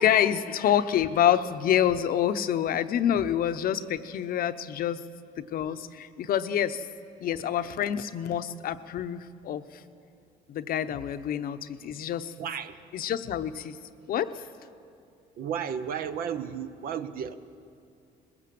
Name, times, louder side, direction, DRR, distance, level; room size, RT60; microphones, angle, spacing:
voice 1, 0.0-5.0 5.4-6.9 7.2-9.8 10.5-12.3 12.9-13.8 14.1-14.3, left 10 dB, 60° left, 11 dB, 0.8 m, -27 dB
voice 2, 12.4-12.8 15.4-17.4, right 8 dB, 60° right, 11 dB, 1.0 m, -33 dB
21.0 x 17.0 x 7.7 m, 2.5 s
cardioid pair, 110°, 17 cm